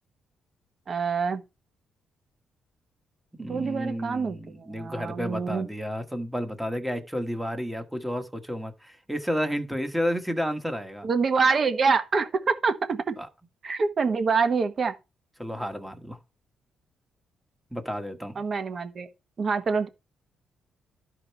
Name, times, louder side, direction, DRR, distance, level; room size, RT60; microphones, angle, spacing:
voice 1, 0.9-1.4 3.5-5.7 11.0-13.2 13.6-14.9 18.3-19.1 19.4-19.9, right 5 dB, 35° right, 1.3 m, -26 dB
voice 2, 3.4-11.1 15.4-16.2 17.7-18.4, equal, 5° right, 1.3 m, -31 dB
12.5 x 4.9 x 4.5 m
cardioid pair, 145°, 0 cm